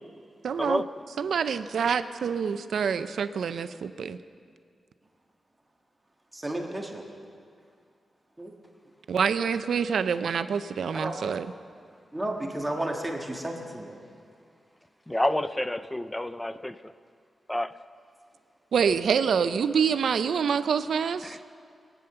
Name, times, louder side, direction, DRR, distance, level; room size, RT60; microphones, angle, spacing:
voice 1, 0.4-0.8 1.2-4.2 9.1-11.5 18.7-21.4, right 6 dB, 80° right, 12 dB, 0.5 m, -26 dB
voice 2, 6.3-7.0 8.4-8.5 10.9-11.2 12.1-14.0, right 1 dB, 15° right, 1 dB, 1.5 m, -32 dB
voice 3, 15.1-16.9 17.5-17.7 21.2-21.4, left 1 dB, 10° left, 13 dB, 0.4 m, -29 dB
21.0 x 9.4 x 6.8 m, 2.3 s
wide cardioid pair, 135°, 0 cm